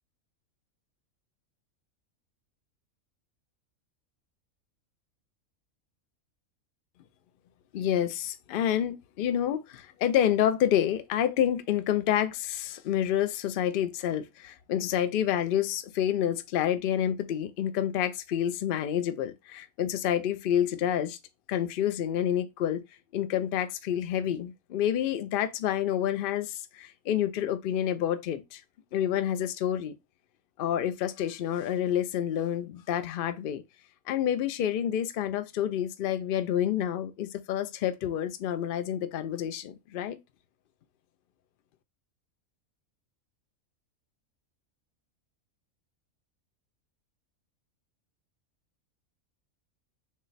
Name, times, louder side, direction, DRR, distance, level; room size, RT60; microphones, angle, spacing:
voice 1, 7.7-21.2 21.5-22.8 23.1-28.6 28.9-29.9 30.6-33.6 34.1-40.2, left 10 dB, 80° left, 0.5 m, -28 dB
6.2 x 2.1 x 4.0 m
omnidirectional pair, 1.5 m